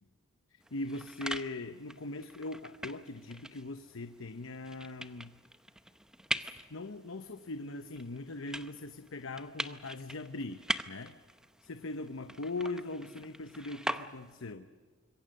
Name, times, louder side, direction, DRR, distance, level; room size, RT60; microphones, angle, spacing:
voice 1, 0.5-5.4 6.4-11.2 11.6-14.7, left 2 dB, 80° left, 9 dB, 0.9 m, -41 dB
sound 1, 0.6-14.5, right 1 dB, 5° right, 0.8 m, -42 dB
26.0 x 22.5 x 6.6 m, 1.6 s
head